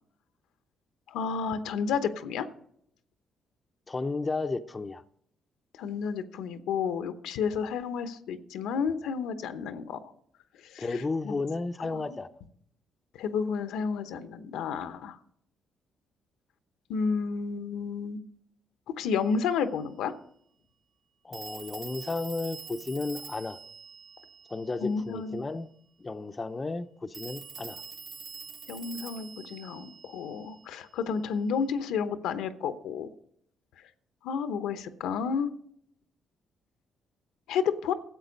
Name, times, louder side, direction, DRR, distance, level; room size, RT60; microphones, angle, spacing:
voice 1, 1.1-2.5 5.8-10.0 10.6-10.8 11.2-11.4 11.8-12.2 13.2-15.2 16.9-18.2 18.9-20.1 24.8-25.4 28.7-33.1 34.2-35.5 37.5-37.9, left 6 dB, 90° left, 0.9 m, -31 dB
voice 2, 3.9-5.0 10.8-12.3 21.2-23.6 24.5-25.7 26.0-27.8, left 3 dB, 25° left, 0.6 m, -33 dB
Telephone, 19.1-19.2 21.3-25.0 27.1-30.8, right 5 dB, 55° right, 1.5 m, -45 dB
13.0 x 7.8 x 5.2 m
cardioid pair, 90°, 0 cm